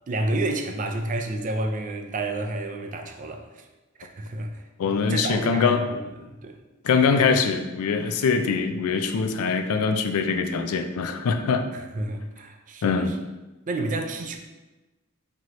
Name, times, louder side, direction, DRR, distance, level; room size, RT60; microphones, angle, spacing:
voice 1, 0.1-3.7 4.0-4.6 5.1-6.5 11.7-13.2 13.7-14.4, right 2 dB, 35° right, 4 dB, 0.4 m, -30 dB
voice 2, 4.8-5.8 6.8-11.7 12.8-13.1, left 5 dB, 80° left, 7 dB, 0.4 m, -23 dB
4.6 x 2.9 x 3.0 m, 1.1 s
head